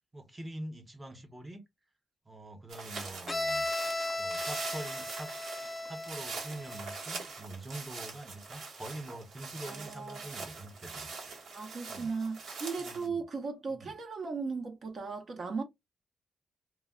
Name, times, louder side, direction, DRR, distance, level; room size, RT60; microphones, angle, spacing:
voice 1, 0.1-1.6 2.2-3.7 4.2-5.3 5.8-11.1 11.9-12.1 12.8-13.2 13.7-13.9, right 1 dB, 15° right, 0.8 m, -44 dB
sound 1, 2.7-13.1, right 4 dB, 85° right, 1.0 m, -43 dB
Bowed string instrument, 3.3-7.0, left 2 dB, 20° left, 0.4 m, -36 dB
voice 2, 9.7-10.3 11.5-15.6, right 4 dB, 55° right, 0.7 m, -37 dB
2.2 x 2.1 x 3.5 m
wide cardioid pair, 120°, 0 cm